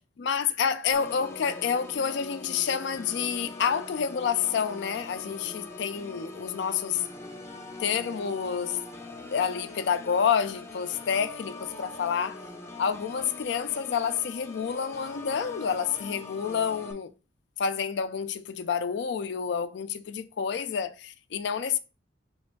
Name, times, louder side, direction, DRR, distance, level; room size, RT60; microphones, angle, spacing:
voice 1, 0.2-7.1 7.8-8.8 9.3-12.4 12.8-17.1 17.6-21.8, left 7 dB, 65° left, 0.4 m, -29 dB
Organ, 0.9-16.9, left 2 dB, 15° left, 0.5 m, -43 dB
3.3 x 3.1 x 4.4 m
head